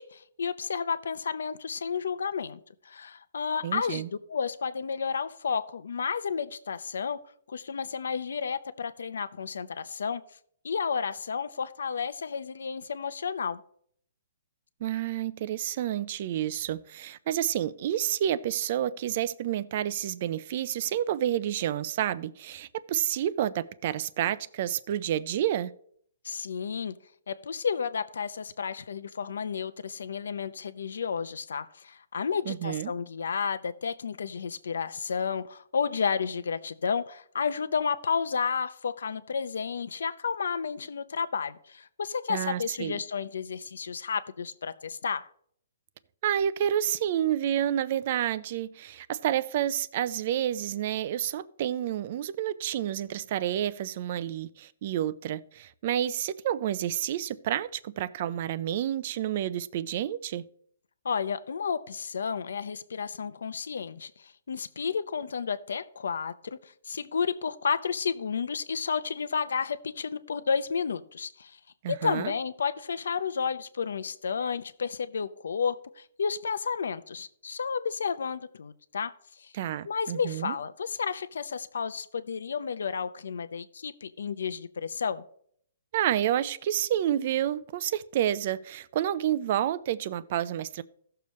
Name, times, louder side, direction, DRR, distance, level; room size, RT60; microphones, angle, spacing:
voice 1, 0.0-2.6 2.8-4.0 4.3-7.2 7.5-10.2 10.6-13.6 26.2-26.9 27.3-45.3 61.0-71.6 71.9-79.1 79.4-79.5 79.8-85.2, left 6 dB, 85° left, 0.7 m, -32 dB
voice 2, 3.6-4.1 14.8-25.7 32.5-32.9 42.3-43.0 46.2-60.5 71.8-72.3 79.5-80.5 85.9-90.8, right 11 dB, 45° right, 0.5 m, -29 dB
16.0 x 6.7 x 3.2 m
hypercardioid pair, 160°, 0 cm